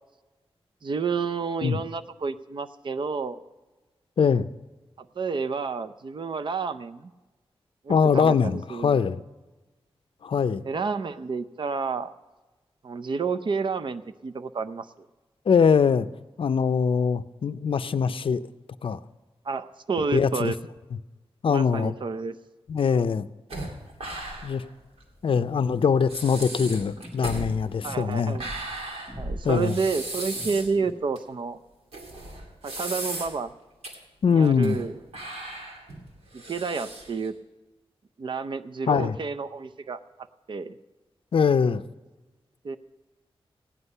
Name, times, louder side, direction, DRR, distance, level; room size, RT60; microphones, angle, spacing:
voice 1, 0.8-3.4 5.0-7.1 7.8-9.0 10.6-12.1 12.8-15.1 19.4-20.6 21.5-22.4 27.8-28.5 29.2-31.6 32.6-33.5 34.3-35.0 36.3-37.3 38.2-40.0 40.5-40.7 42.6-42.8, right 5 dB, 55° right, 10 dB, 0.6 m, -30 dB
voice 2, 4.2-4.5 7.9-9.2 10.2-10.6 15.5-16.1 16.4-18.4 18.8-19.0 20.1-20.5 21.4-21.9 22.7-23.3 24.4-24.6 25.2-28.4 29.4-29.7 34.2-34.8 38.9-39.2 41.3-41.8, left 6 dB, 65° left, 13 dB, 0.5 m, -22 dB
sound 1, 23.5-24.7 25.0-25.1 25.7-25.8 26.1-30.7 31.1-31.2 31.9-33.5 33.8-33.9 34.4-34.9 35.1-37.3, right 1 dB, 85° right, 2.4 m, -36 dB
sound 2, 24.8-31.0, left 1 dB, ahead, 2.1 m, -46 dB
16.0 x 9.8 x 5.5 m, 1.2 s
wide cardioid pair, 105°, 10 cm